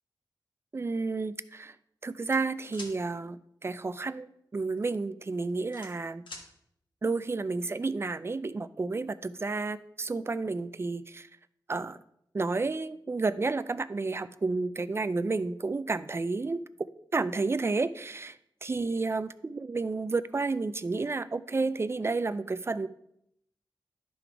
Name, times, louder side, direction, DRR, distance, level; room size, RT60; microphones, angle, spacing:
voice 1, 0.7-1.8 2.0-6.2 7.0-11.3 11.7-12.0 12.3-16.6 17.1-22.9, right 3 dB, 30° right, 14 dB, 0.4 m, -31 dB
sound 1, 2.3-2.9 4.6-4.8 5.2-6.5, left 2 dB, 85° left, 1.4 m, -45 dB
11.5 x 3.9 x 4.5 m, 0.74 s
wide cardioid pair, 95°, 8 cm